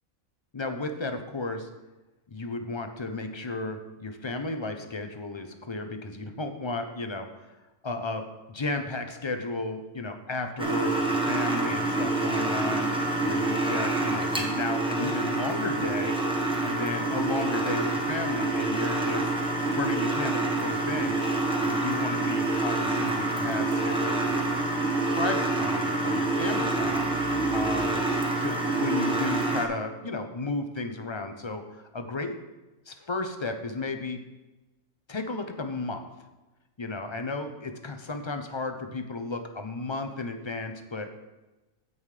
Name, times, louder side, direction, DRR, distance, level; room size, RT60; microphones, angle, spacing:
voice 1, 0.5-1.7 2.3-7.3 7.8-12.9 13.2-16.2 16.6-19.3 19.8-21.2 21.6-24.4 25.1-27.1 27.5-28.0 28.4-32.4 32.9-34.2 35.1-36.0 36.8-41.1, left 3 dB, 30° left, 6 dB, 0.5 m, -33 dB
sound 1, 10.6-29.7, right 2 dB, 5° right, 1.0 m, -27 dB
sound 2, 14.3-27.9, right 4 dB, 80° right, 1.5 m, -46 dB
15.5 x 5.4 x 3.3 m, 1.1 s
omnidirectional pair, 1.4 m